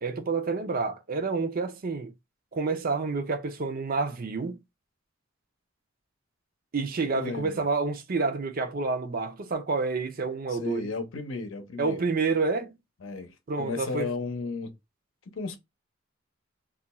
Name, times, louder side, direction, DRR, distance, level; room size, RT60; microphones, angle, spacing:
voice 1, 0.0-2.1 2.5-4.6 6.7-10.9 11.8-12.8 13.5-14.1, right 4 dB, 45° right, 0.5 m, -29 dB
voice 2, 7.1-7.6 10.6-12.0 13.0-14.7 15.4-15.6, left 3 dB, 75° left, 0.7 m, -34 dB
2.4 x 2.3 x 4.0 m
head